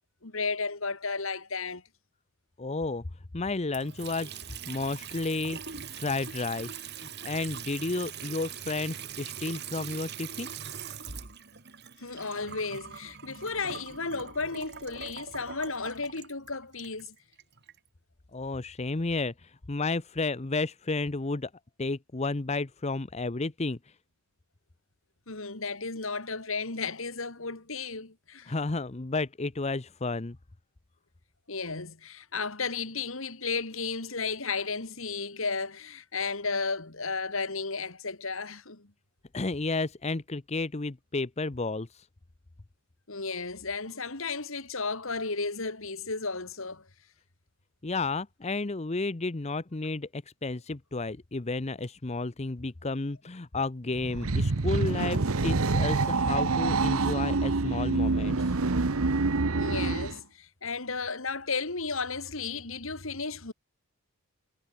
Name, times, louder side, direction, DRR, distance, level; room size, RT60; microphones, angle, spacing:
voice 1, 0.2-1.8 12.0-17.1 25.3-28.5 31.5-38.9 43.1-46.9 59.5-63.5, left 4 dB, 65° left, 2.7 m, -34 dB
voice 2, 2.6-3.0 3.3-10.5 18.3-21.5 21.8-23.8 28.5-30.4 39.3-42.1 47.8-58.5, left 3 dB, 30° left, 0.7 m, -32 dB
Water tap faucet / Sink (filling or washing) / Trickle dribble, 3.7-17.8, right 7 dB, 50° right, 2.6 m, -42 dB
sound 1, 53.9-60.2, right 3 dB, 75° right, 1.0 m, -26 dB
head